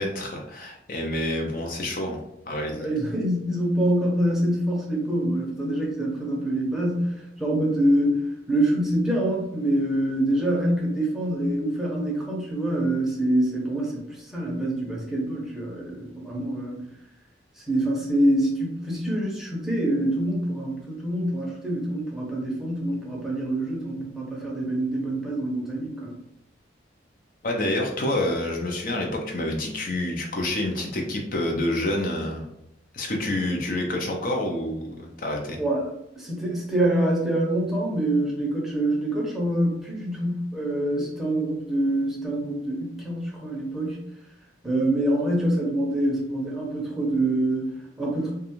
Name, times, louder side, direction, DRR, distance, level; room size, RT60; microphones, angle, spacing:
voice 1, 0.0-2.9 27.4-32.5 32.9-35.6, left 1 dB, 50° left, 1 dB, 0.5 m, -28 dB
voice 2, 2.8-16.8 17.6-26.1 35.6-44.0 44.6-48.3, right 1 dB, ahead, -4 dB, 0.6 m, -25 dB
2.4 x 2.3 x 2.9 m, 0.83 s
head